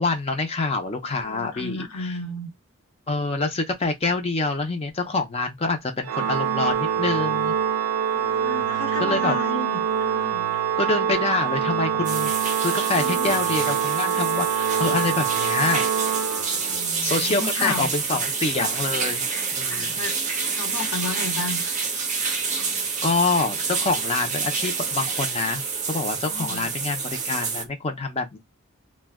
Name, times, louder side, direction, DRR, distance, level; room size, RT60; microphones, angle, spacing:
voice 1, 0.0-2.1 3.1-7.5 9.0-9.4 10.8-12.3 12.6-15.9 17.0-19.2 19.5-19.9 23.0-25.6 25.9-28.4, left 3 dB, 30° left, 0.4 m, -26 dB
voice 2, 1.1-2.5 8.1-10.5 12.9-13.4 16.5-17.9 19.7-20.2 20.5-21.6 26.3-26.7, left 2 dB, 80° left, 0.9 m, -33 dB
Organ, 6.0-16.9, right 8 dB, 80° right, 0.4 m, -25 dB
sound 1, 12.0-27.6, right 5 dB, 35° right, 0.6 m, -28 dB
2.1 x 2.1 x 3.3 m
head